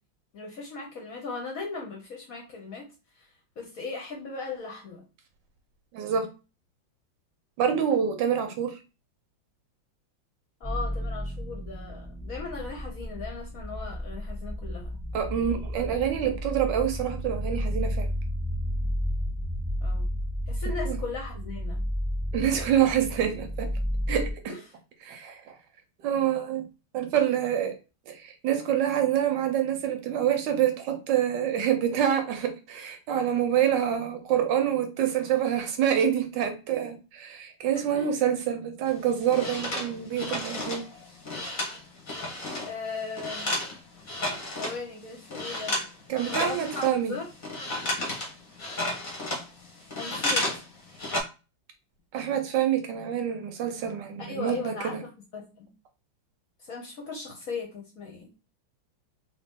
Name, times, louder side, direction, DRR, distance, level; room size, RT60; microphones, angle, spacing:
voice 1, 0.3-2.9 3.2-3.3 3.6-5.0 10.6-14.9 19.8-20.1 20.5-21.8 24.5-24.6 37.7-38.1 42.6-43.6 44.6-45.7 46.3-47.3 49.9-50.6 54.2-55.7 56.6-58.3, left 4 dB, 60° left, 1 dB, 1.0 m, -38 dB
voice 2, 5.9-6.3 7.6-8.8 15.1-18.1 20.9-21.0 22.3-23.7 24.1-24.5 25.0-25.6 26.0-26.6 26.9-27.7 28.1-40.8 46.1-47.1 52.1-55.0, right 9 dB, 75° right, 7 dB, 1.2 m, -26 dB
sound 1, 10.6-24.3, equal, 10° left, 1.3 m, -32 dB
sound 2, 38.9-42.7 43.0-44.8 45.2-45.9 46.2-50.6 50.9-51.2, left 1 dB, 35° left, 0.8 m, -32 dB
2.9 x 2.9 x 3.4 m, 0.31 s
omnidirectional pair, 2.1 m